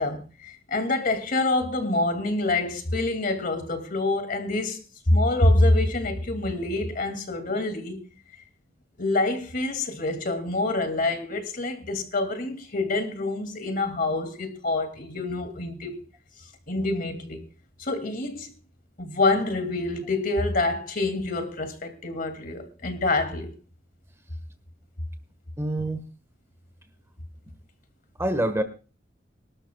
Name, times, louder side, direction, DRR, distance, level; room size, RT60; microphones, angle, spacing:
voice 1, 0.0-4.8 5.1-8.0 9.0-16.0 16.7-17.4 17.8-18.5 19.0-23.5, left 2 dB, 50° left, 2.4 m, -26 dB
voice 2, 25.6-26.1 28.2-28.6, right 1 dB, 15° right, 1.4 m, -26 dB
25.5 x 12.5 x 2.3 m
head